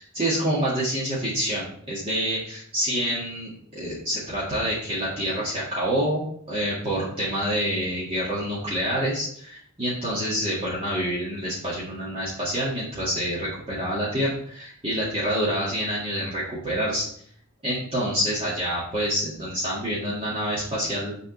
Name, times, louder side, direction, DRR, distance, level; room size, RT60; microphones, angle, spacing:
voice 1, 0.1-17.1 17.6-21.1, equal, 25° right, -8 dB, 2.0 m, -27 dB
6.7 x 4.2 x 5.4 m, 0.62 s
head